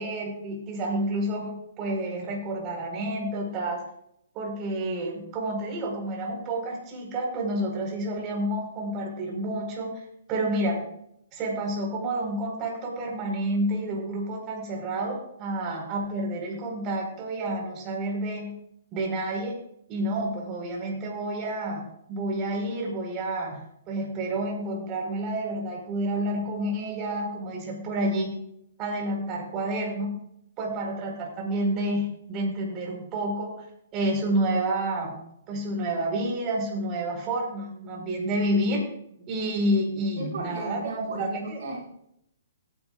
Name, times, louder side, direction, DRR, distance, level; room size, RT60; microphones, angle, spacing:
voice 1, 0.0-1.5 1.8-3.8 4.3-9.9 10.3-10.8 11.3-18.5 18.9-19.6 19.9-23.6 23.9-28.3 28.8-30.1 30.6-33.6 33.9-35.2 35.5-38.8 39.3-41.6, right 1 dB, 30° right, 0 dB, 4.5 m, -29 dB
voice 2, 40.2-41.9, right 2 dB, 70° right, -3 dB, 5.1 m, -35 dB
17.5 x 10.5 x 2.5 m, 0.74 s
hypercardioid pair, 135°, 0 cm